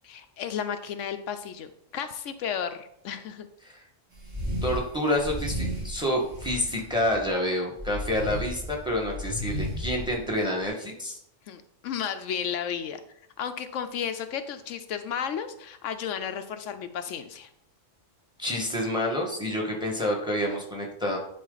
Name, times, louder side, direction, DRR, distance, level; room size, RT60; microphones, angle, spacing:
voice 1, 0.0-3.5 11.5-13.0 13.4-17.5, left 8 dB, 75° left, 8 dB, 0.9 m, -33 dB
sound 1, 4.1-4.8 5.1-7.3 7.8-10.6, left 1 dB, 25° right, 1.6 m, -34 dB
voice 2, 4.6-11.2 18.4-21.2, left 1 dB, 5° right, 0 dB, 1.5 m, -28 dB
10.0 x 4.4 x 4.0 m, 0.72 s
omnidirectional pair, 1.3 m